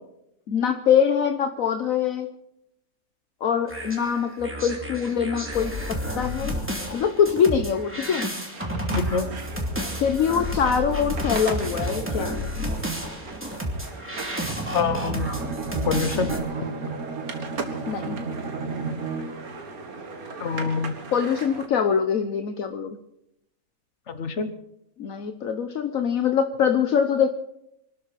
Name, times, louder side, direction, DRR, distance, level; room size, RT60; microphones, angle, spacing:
voice 1, 0.5-2.3 3.4-6.5 6.9-8.2 10.0-12.5 17.9-18.2 21.1-23.0 25.0-27.3, left 7 dB, 70° left, 8 dB, 1.3 m, -23 dB
sound 1, 3.7-16.4, equal, 10° right, 2.7 m, -31 dB
sound 2, 8.5-21.7, right 4 dB, 80° right, 2.2 m, -39 dB
voice 2, 8.9-9.3 14.7-15.3 15.8-16.3 16.6-16.7 20.4-21.0 24.1-24.5, left 5 dB, 55° left, 10 dB, 1.6 m, -25 dB
Bowed string instrument, 15.2-19.6, right 4 dB, 60° right, 1.8 m, -32 dB
25.0 x 13.0 x 4.2 m, 0.81 s
omnidirectional pair, 1.5 m